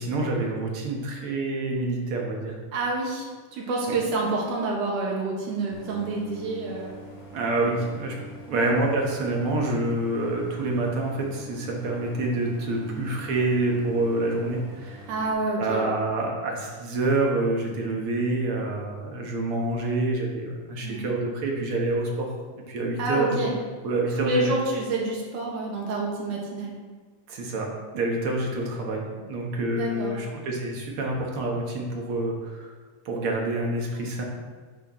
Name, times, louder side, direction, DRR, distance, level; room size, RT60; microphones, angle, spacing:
voice 1, 0.0-2.6 7.3-8.1 8.5-15.0 15.6-22.3 22.7-23.4 23.8-24.5 27.3-32.7 33.0-34.2, right 2 dB, 55° right, -1 dB, 1.7 m, -27 dB
voice 2, 2.7-6.9 8.5-8.7 12.9-13.0 15.1-15.8 20.8-21.1 23.0-23.5 24.2-26.7 29.7-30.1, right 2 dB, 75° right, -3 dB, 3.2 m, -28 dB
Idling, 5.7-15.3, equal, 90° left, 3.6 m, -44 dB
9.7 x 8.5 x 3.1 m, 1.4 s
omnidirectional pair, 3.6 m